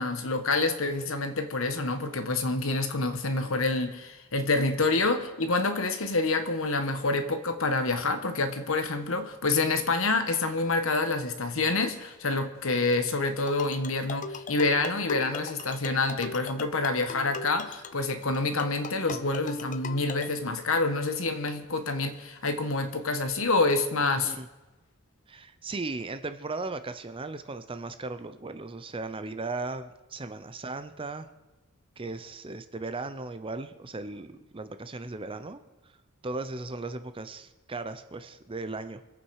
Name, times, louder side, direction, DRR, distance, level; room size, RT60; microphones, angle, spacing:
voice 1, 0.0-24.3, left 3 dB, 65° left, 8 dB, 1.3 m, -27 dB
sound 1, 13.4-20.3, left 5 dB, 35° left, 0.5 m, -39 dB
voice 2, 24.0-24.5 25.3-31.3 32.0-35.6 36.2-39.0, right 3 dB, 25° right, 10 dB, 0.6 m, -37 dB
24.5 x 8.7 x 4.8 m, 1.1 s
head